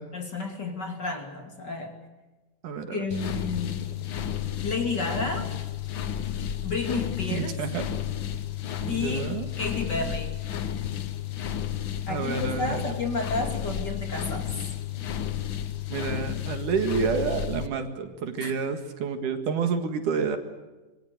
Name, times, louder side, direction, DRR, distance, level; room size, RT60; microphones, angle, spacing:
voice 1, 0.1-2.0 2.9-4.0 4.6-5.5 6.6-7.5 8.9-9.2 9.6-10.3 12.1-14.7 18.4-18.6, left 3 dB, 35° left, 4 dB, 2.9 m, -31 dB
voice 2, 2.6-3.4 3.7-3.8 7.3-7.8 8.8-9.5 12.1-12.8 15.9-20.4, right 5 dB, 70° right, 7 dB, 3.3 m, -29 dB
sound 1, 3.1-17.7, left 10 dB, 65° left, 1.2 m, -32 dB
25.5 x 22.5 x 8.0 m, 1.2 s
omnidirectional pair, 3.7 m